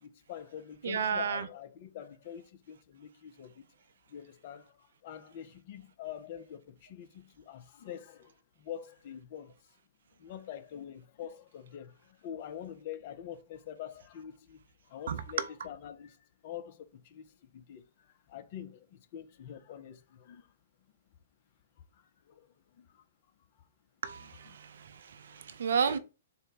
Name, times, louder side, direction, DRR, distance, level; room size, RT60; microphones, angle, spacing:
voice 1, 0.0-3.7 4.1-9.8 10.2-20.6 20.8-20.9 21.9-23.0 23.5-23.7 24.2-24.9 25.3-25.4, left 10 dB, 45° left, 0.4 m, -46 dB
voice 2, 0.8-1.5 15.1-15.2 24.0-26.0, right 6 dB, 60° right, 0.4 m, -32 dB
3.8 x 2.1 x 3.9 m
figure-of-eight pair, 110°, 0 cm